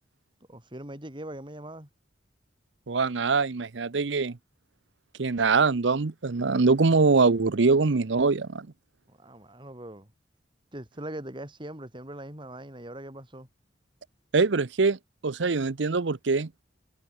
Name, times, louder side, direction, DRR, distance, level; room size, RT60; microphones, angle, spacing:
voice 1, 0.5-1.9 9.1-10.1 10.7-13.5, right 1 dB, 25° right, 4.5 m, -41 dB
voice 2, 2.9-4.4 5.2-8.7 14.3-15.0 15.2-16.5, right 4 dB, 75° right, 0.7 m, -23 dB
head